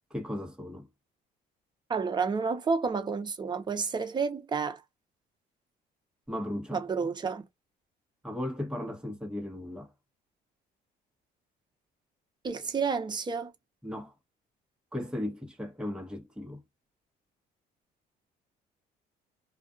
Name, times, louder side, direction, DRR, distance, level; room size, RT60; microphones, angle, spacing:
voice 1, 0.1-0.9 6.3-6.8 8.2-9.9 13.8-14.1 14.9-16.6, left 1 dB, 5° right, 1.1 m, -36 dB
voice 2, 1.9-4.8 6.7-7.4 12.4-13.5, right 5 dB, 25° right, 0.7 m, -30 dB
2.4 x 2.3 x 2.4 m
cardioid pair, 110°, 17 cm